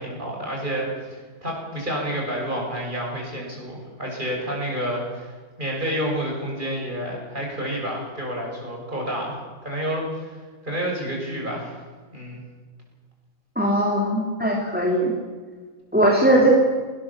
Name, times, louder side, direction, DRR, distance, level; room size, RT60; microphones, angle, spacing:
voice 1, 0.0-5.3 5.6-9.4 9.6-10.3 10.6-11.8 12.1-12.4 16.2-16.4, equal, 20° right, -1 dB, 6.9 m, -29 dB
voice 2, 13.6-15.1 15.9-16.5, right 1 dB, 5° right, -1 dB, 2.7 m, -19 dB
19.5 x 19.5 x 7.4 m, 1.5 s
omnidirectional pair, 2.3 m